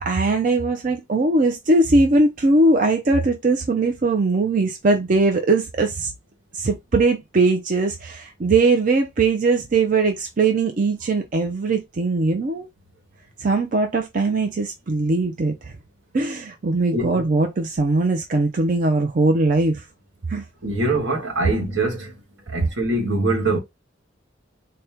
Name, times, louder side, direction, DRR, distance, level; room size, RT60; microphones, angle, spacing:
voice 1, 0.0-6.1 6.5-12.7 13.4-15.5 16.1-19.8 20.3-20.4 22.6-22.7, right 3 dB, 40° right, 0.5 m, -20 dB
voice 2, 20.6-22.1 22.5-23.6, right 2 dB, 75° right, 1.5 m, -23 dB
4.2 x 2.2 x 3.4 m
head